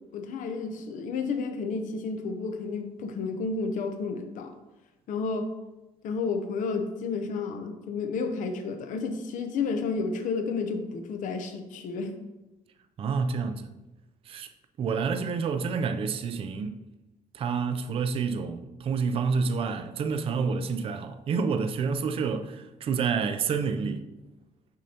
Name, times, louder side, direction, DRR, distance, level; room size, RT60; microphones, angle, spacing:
voice 1, 0.1-4.5 5.1-5.5 6.0-12.2, left 4 dB, 65° left, 0.7 m, -31 dB
voice 2, 13.0-13.7 14.3-14.5 14.8-16.8 17.3-24.1, right 5 dB, 40° right, 0.4 m, -28 dB
6.2 x 5.4 x 2.8 m
cardioid pair, 130°, 14 cm